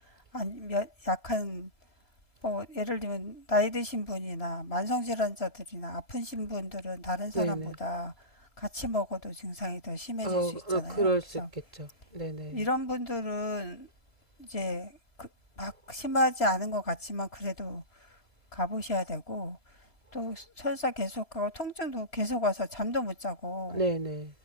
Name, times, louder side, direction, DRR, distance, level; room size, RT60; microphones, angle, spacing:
voice 1, 0.3-1.7 2.4-8.1 8.6-11.5 12.5-13.9 14.4-15.3 15.6-17.8 18.5-19.6 20.1-23.8, left 1 dB, 75° left, 7.9 m, -32 dB
voice 2, 7.3-7.7 10.2-11.4 11.8-12.6 23.7-24.3, right 1 dB, 35° right, 4.5 m, -30 dB
omnidirectional pair, 1.1 m